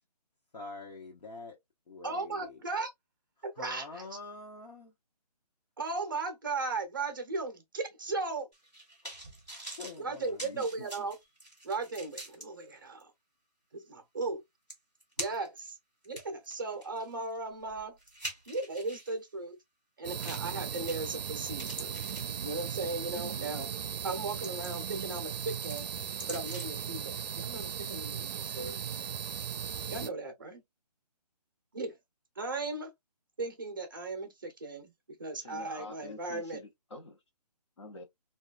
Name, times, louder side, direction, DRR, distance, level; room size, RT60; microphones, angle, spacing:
voice 1, 0.5-1.6 1.9-2.6 3.6-4.9 9.7-10.5, left 3 dB, 75° left, 1.0 m, -45 dB
voice 2, 2.0-2.9 3.4-3.9 5.8-8.5 10.0-11.2 11.6-13.1 13.7-14.4 15.2-15.8 16.0-18.0 18.5-19.6 20.0-22.0 22.4-23.7 24.0-25.9 26.3-29.0 29.9-30.6 31.7-32.0 32.4-32.9 33.4-34.9 35.2-36.6, right 3 dB, 30° right, 0.6 m, -37 dB
sound 1, 8.5-12.4 13.0-13.1 14.3-14.4 14.7-15.6 16.0-19.1 20.2-20.5 20.9-21.3 21.5-22.9 23.4-23.6 24.1-25.0 25.3-26.8 27.2-27.3, right 2 dB, 10° left, 0.7 m, -45 dB
voice 3, 10.4-10.9 35.4-37.2 37.8-38.0, left 3 dB, 45° left, 0.7 m, -47 dB
sound 2, 20.0-30.1, right 8 dB, 85° right, 0.4 m, -37 dB
3.0 x 2.3 x 2.3 m
hypercardioid pair, 175°, 21 cm